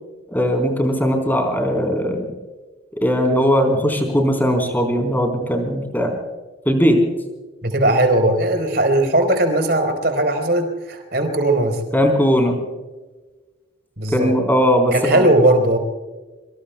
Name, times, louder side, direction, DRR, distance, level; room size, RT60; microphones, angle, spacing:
voice 1, 0.3-2.3 3.0-6.1 6.7-7.0 11.9-12.6 14.1-15.3, equal, 10° left, 3 dB, 3.7 m, -18 dB
voice 2, 7.6-11.8 14.0-14.4 14.9-15.8, right 1 dB, 55° right, 5 dB, 4.1 m, -18 dB
25.0 x 25.0 x 2.2 m, 1.2 s
head